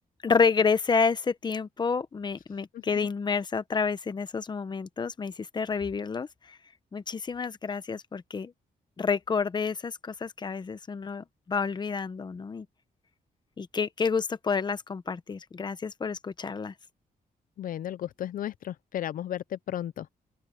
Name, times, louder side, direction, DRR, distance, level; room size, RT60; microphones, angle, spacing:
voice 1, 0.2-6.6 6.9-8.5 9.0-12.7 13.6-16.7, left 5 dB, 30° left, 0.9 m, -29 dB
voice 2, 17.6-20.1, left 11 dB, 65° left, 0.4 m, -34 dB
open air
wide cardioid pair, 145°, 16 cm